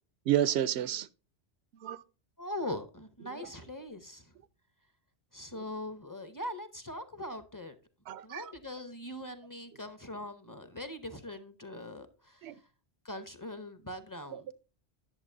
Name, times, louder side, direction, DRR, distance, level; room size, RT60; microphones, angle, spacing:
voice 1, 0.3-1.1 1.8-2.0 8.1-8.4 12.4-12.5, right 11 dB, 75° right, 0.9 m, -29 dB
voice 2, 2.4-4.3 5.3-7.8 8.2-12.5 13.0-14.5, left 1 dB, 20° left, 0.7 m, -41 dB
10.5 x 7.1 x 2.6 m
omnidirectional pair, 1.1 m